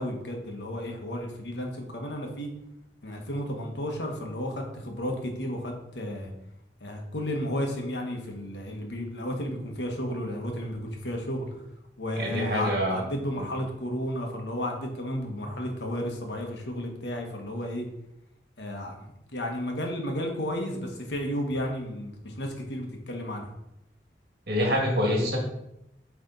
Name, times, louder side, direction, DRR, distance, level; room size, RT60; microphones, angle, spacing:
voice 1, 0.0-2.5 3.0-6.3 6.8-11.6 12.0-17.8 18.6-23.5, equal, 85° left, 2 dB, 1.3 m, -33 dB
voice 2, 12.2-13.0 13.4-13.5 24.5-25.4, equal, 60° right, -1 dB, 1.9 m, -26 dB
8.3 x 3.4 x 3.9 m, 0.84 s
head